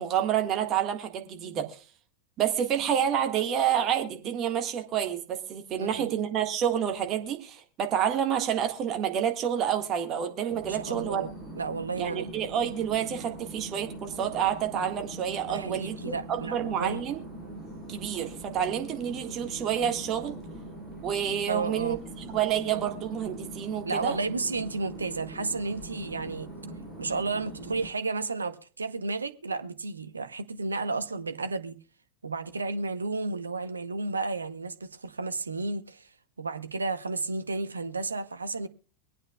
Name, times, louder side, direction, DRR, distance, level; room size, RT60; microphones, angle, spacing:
voice 1, 0.0-1.8 2.4-11.2 12.0-17.2 17.9-20.4 21.0-24.2, right 9 dB, 30° right, 1.7 m, -29 dB
voice 2, 5.8-6.1 10.7-12.3 15.5-17.0 21.5-22.0 23.8-26.5 27.0-31.8 32.2-36.1 36.4-38.7, right 3 dB, 75° right, 0.8 m, -32 dB
sound 1, 10.5-27.9, right 1 dB, 10° left, 5.7 m, -42 dB
24.0 x 8.9 x 2.3 m
figure-of-eight pair, 90°, 0 cm